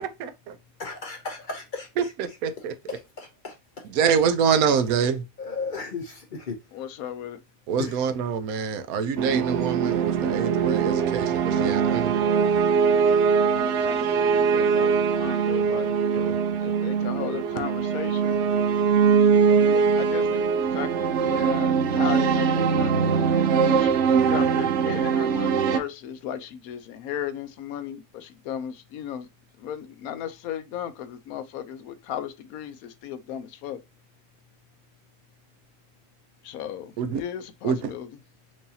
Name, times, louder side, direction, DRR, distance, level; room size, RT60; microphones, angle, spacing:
voice 1, 0.2-0.6 2.0-2.7 3.9-5.2 7.7-12.1 16.2-16.3 37.0-37.2 37.6-37.9, right 6 dB, 85° right, 1.1 m, -25 dB
voice 2, 0.8-2.1 2.9-3.5 5.4-6.6 7.8-8.0, left 4 dB, 55° left, 0.5 m, -34 dB
voice 3, 6.7-7.4 13.6-16.3 16.6-18.4 19.5-29.3 29.6-33.8 36.4-38.1, left 10 dB, 85° left, 1.1 m, -36 dB
sound 1, 9.2-25.8, right 6 dB, 65° right, 0.8 m, -22 dB
4.6 x 2.7 x 2.7 m
omnidirectional pair, 1.5 m